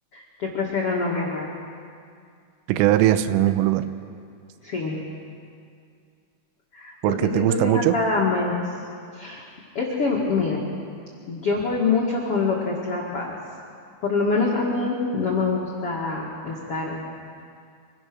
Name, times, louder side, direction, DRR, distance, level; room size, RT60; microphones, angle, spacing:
voice 1, 0.1-1.5 4.6-5.0 6.7-8.6 9.1-9.4 9.7-10.6 11.3-13.4 14.0-17.0, left 4 dB, 55° left, -3 dB, 1.6 m, -25 dB
voice 2, 2.7-3.9 7.0-8.0, right 13 dB, 90° right, 11 dB, 3.4 m, -20 dB
26.0 x 17.0 x 6.2 m, 2.3 s
omnidirectional pair, 5.7 m